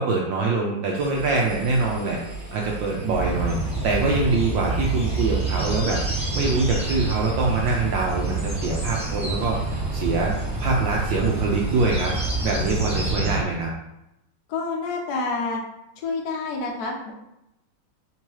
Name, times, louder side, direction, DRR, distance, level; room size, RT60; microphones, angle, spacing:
voice 1, 0.0-2.2 2.5-3.6 3.8-6.0 6.3-12.1 12.4-13.7, right 3 dB, 70° right, -1 dB, 1.2 m, -24 dB
Engine, 0.9-13.1, right 4 dB, 20° right, 1.0 m, -39 dB
sound 1, 3.1-13.4, right 2 dB, 5° right, 0.7 m, -27 dB
voice 2, 14.5-15.6 16.0-17.1, left 3 dB, 75° left, -1 dB, 0.9 m, -28 dB
3.6 x 2.9 x 4.5 m, 0.86 s
omnidirectional pair, 2.3 m